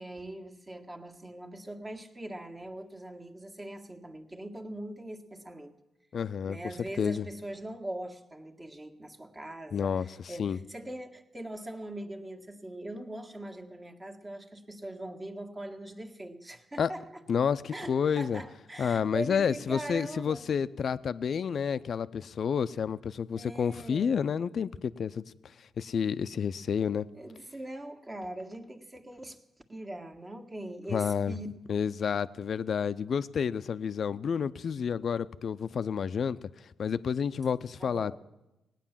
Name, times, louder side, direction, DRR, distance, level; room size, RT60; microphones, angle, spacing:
voice 1, 0.0-5.7 6.5-17.2 17.7-20.4 23.3-24.2 27.1-29.4 29.7-31.5 37.8-38.2, right 1 dB, 25° right, 1.7 m, -41 dB
voice 2, 6.1-6.6 7.0-7.3 9.7-10.6 16.8-16.9 17.3-18.4 18.8-25.2 25.8-27.1 30.9-31.3 31.7-36.5 36.8-38.2, left 7 dB, 60° left, 0.5 m, -30 dB
17.5 x 9.1 x 7.4 m
supercardioid pair, 55°, 0 cm